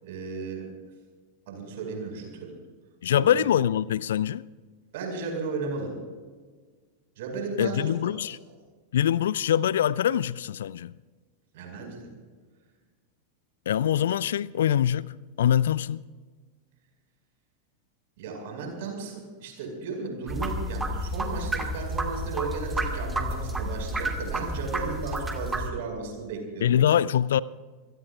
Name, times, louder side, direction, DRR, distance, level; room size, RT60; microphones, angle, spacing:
voice 1, 0.0-0.7 1.5-2.5 3.1-3.4 4.9-5.9 7.2-8.2 11.5-12.1 18.2-26.8, right 4 dB, 55° right, 5.3 m, -35 dB
voice 2, 3.0-4.4 7.6-8.4 8.9-10.9 13.7-15.1 15.4-16.0 26.6-27.4, left 10 dB, 60° left, 0.3 m, -24 dB
sound 1, 20.3-25.7, right 1 dB, 10° right, 1.8 m, -30 dB
27.5 x 17.0 x 2.5 m
figure-of-eight pair, 90°, 0 cm